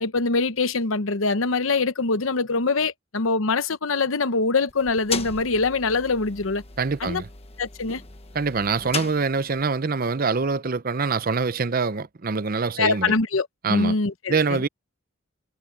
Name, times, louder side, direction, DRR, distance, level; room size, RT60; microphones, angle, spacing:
voice 1, 0.0-6.6 7.0-7.2 7.6-8.0 12.8-14.6, left 3 dB, 85° left, 1.0 m, -24 dB
sound 1, 4.7-9.8, left 5 dB, 30° left, 1.3 m, -37 dB
voice 2, 6.8-7.3 8.3-13.1 13.6-13.9 14.3-14.7, right 4 dB, 45° right, 0.7 m, -24 dB
head